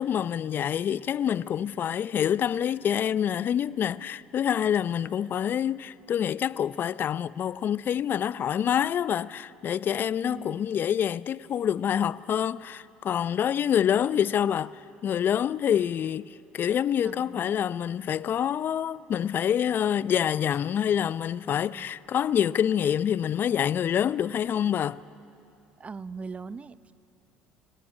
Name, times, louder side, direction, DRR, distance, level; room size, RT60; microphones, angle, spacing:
voice 1, 0.0-25.0, left 9 dB, 45° left, 0.6 m, -26 dB
voice 2, 10.2-10.6 17.0-17.5 21.8-21.9 25.8-26.9, right 4 dB, 30° right, 0.8 m, -40 dB
26.5 x 17.0 x 9.8 m
hypercardioid pair, 65°, 5 cm